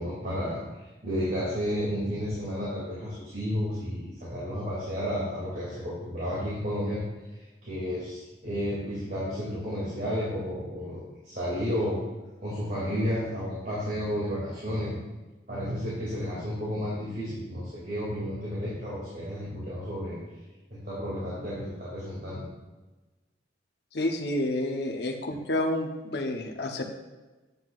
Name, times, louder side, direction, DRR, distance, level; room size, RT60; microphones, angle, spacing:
voice 1, 0.0-7.0 7.4-12.0 12.4-15.0 15.5-20.2 20.7-22.5, equal, 55° right, -8 dB, 2.3 m, -32 dB
voice 2, 23.9-26.8, left 1 dB, 60° left, 2 dB, 0.9 m, -29 dB
9.4 x 7.7 x 2.4 m, 1.2 s
head